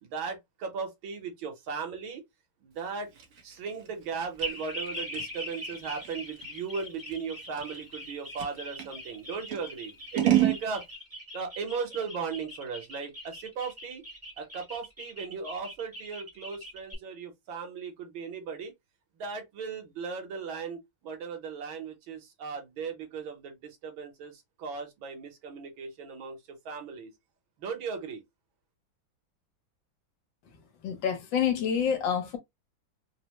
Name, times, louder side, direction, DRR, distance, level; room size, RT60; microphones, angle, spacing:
voice 1, 0.0-2.2 2.6-3.1 3.4-10.8 11.3-14.0 14.4-18.7 19.2-27.1 27.6-28.2, right 5 dB, 90° right, 1.8 m, -37 dB
Scissors, 2.8-8.9 9.5-10.6, right 13 dB, 55° right, 1.3 m, -31 dB
sound 1, 4.4-16.9, equal, 10° right, 1.0 m, -42 dB
voice 2, 30.8-32.4, left 8 dB, 75° left, 1.6 m, -27 dB
4.0 x 2.1 x 2.9 m
omnidirectional pair, 2.1 m